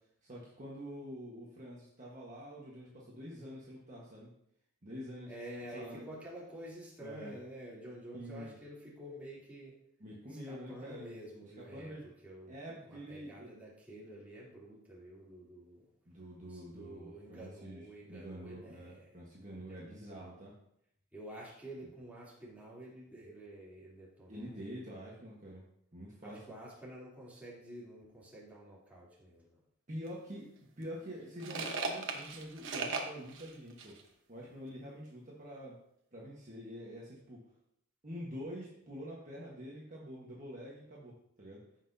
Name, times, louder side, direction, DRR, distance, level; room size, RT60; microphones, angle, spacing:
voice 1, 0.2-4.3 4.8-5.3 5.7-6.1 7.0-7.4 8.1-8.5 10.0-11.1 11.4-12.1 12.5-13.5 16.0-20.5 24.3-25.6 25.9-26.5 29.9-30.5 30.8-33.9 34.3-35.7 36.1-37.4 38.0-41.6, equal, 35° right, -4 dB, 1.4 m, -46 dB
voice 2, 5.3-9.8 10.5-12.5 12.8-15.8 16.5-19.1 19.5-20.1 21.1-24.5 26.2-29.5, right 1 dB, 5° right, -7 dB, 3.2 m, -49 dB
sound 1, 30.1-30.2 30.8-34.0, right 3 dB, 60° right, 1.2 m, -38 dB
15.0 x 5.9 x 2.8 m, 0.75 s
head